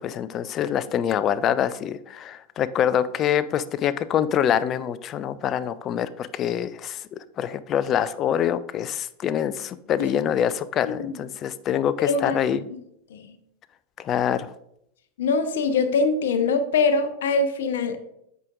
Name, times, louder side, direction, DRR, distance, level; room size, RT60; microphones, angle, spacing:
voice 1, 0.0-12.6 14.0-14.5, left 9 dB, 30° left, 15 dB, 0.3 m, -25 dB
voice 2, 12.0-12.4 13.1-13.3 15.2-18.0, left 4 dB, 60° left, 9 dB, 0.7 m, -23 dB
8.2 x 5.0 x 2.4 m, 0.76 s
figure-of-eight pair, 90°, 0 cm